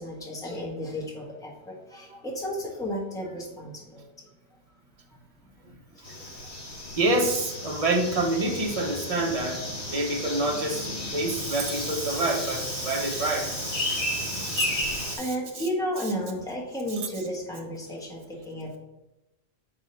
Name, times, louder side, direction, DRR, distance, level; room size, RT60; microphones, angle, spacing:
voice 1, 0.0-4.1 6.0-6.1 14.8-14.9 15.2-18.8, equal, 5° left, -3 dB, 1.2 m, -33 dB
sound 1, 6.0-15.2, left 1 dB, 50° left, 1.6 m, -33 dB
voice 2, 7.0-15.3, right 2 dB, 35° right, 1 dB, 0.9 m, -28 dB
sound 2, 11.6-11.9 12.2-12.6 13.2-13.4 14.1-14.3 14.6-15.0 15.8-15.9 16.2-16.3 16.8-17.1 17.4-17.7, right 8 dB, 90° right, 0.9 m, -35 dB
4.8 x 3.6 x 5.4 m, 0.96 s
omnidirectional pair, 1.1 m